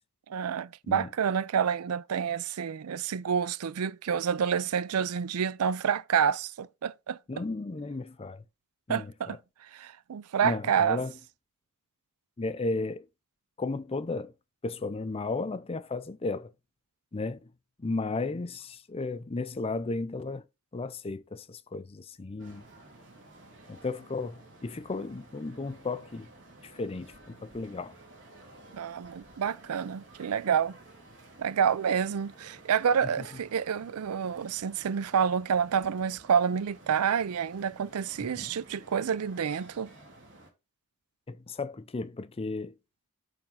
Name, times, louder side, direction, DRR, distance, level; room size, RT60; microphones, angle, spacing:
voice 1, 0.3-7.2 8.9-9.4 9.7-11.0 28.7-30.8 31.4-39.9, right 7 dB, 85° right, 0.5 m, -28 dB
voice 2, 7.3-8.4 8.9-9.4 10.4-11.1 12.4-13.1 13.6-14.3 14.6-16.5 17.1-17.5 17.8-20.4 20.7-22.6 23.7-26.3 26.6-27.9 33.0-33.3 38.2-38.6 41.3-42.7, left 3 dB, 25° left, 0.5 m, -34 dB
sound 1, 22.4-40.5, right 2 dB, 55° right, 2.6 m, -53 dB
8.9 x 3.5 x 5.5 m
head